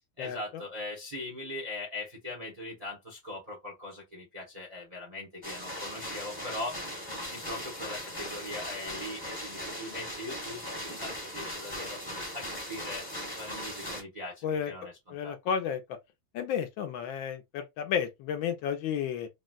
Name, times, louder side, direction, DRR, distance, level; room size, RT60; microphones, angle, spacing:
voice 1, 0.2-6.8 7.2-13.1 13.4-15.3, left 2 dB, 40° right, 0.5 m, -41 dB
sound 1, 5.4-14.0, left 1 dB, 15° left, 0.8 m, -39 dB
voice 2, 15.1-15.8 16.3-19.3, left 8 dB, 80° left, 1.4 m, -32 dB
4.0 x 2.1 x 2.3 m
omnidirectional pair, 2.2 m